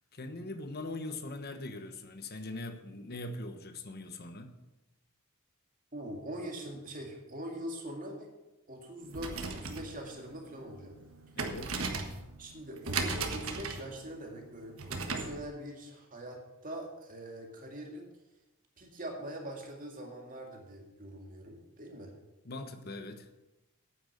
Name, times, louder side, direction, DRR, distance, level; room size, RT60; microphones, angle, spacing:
voice 1, 0.0-4.6 11.4-11.8 22.4-23.3, left 2 dB, 45° left, 8 dB, 1.1 m, -41 dB
voice 2, 5.9-8.3 8.7-11.0 11.3-11.4 12.4-18.1 18.8-22.1, right 1 dB, 40° right, 1 dB, 2.1 m, -43 dB
sound 1, 9.0-15.4, right 4 dB, 65° right, 1.4 m, -37 dB
9.4 x 8.9 x 6.6 m, 1.0 s
head